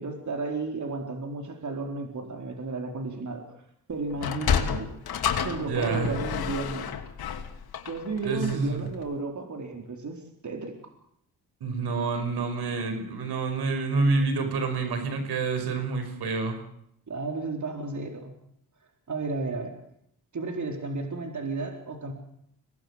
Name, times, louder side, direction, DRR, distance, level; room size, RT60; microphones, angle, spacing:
voice 1, 0.0-3.4 3.9-4.9 5.4-6.9 7.9-10.7 17.1-18.3 19.1-19.8 20.3-22.1, right 3 dB, 50° right, 3 dB, 4.3 m, -33 dB
Sliding door, 4.1-8.7, left 7 dB, 70° left, 2.7 m, -30 dB
voice 2, 5.7-6.1 8.2-8.8 11.6-16.6, right 4 dB, 80° right, 7 dB, 5.5 m, -28 dB
23.5 x 19.0 x 8.2 m, 0.74 s
cardioid pair, 65°, 38 cm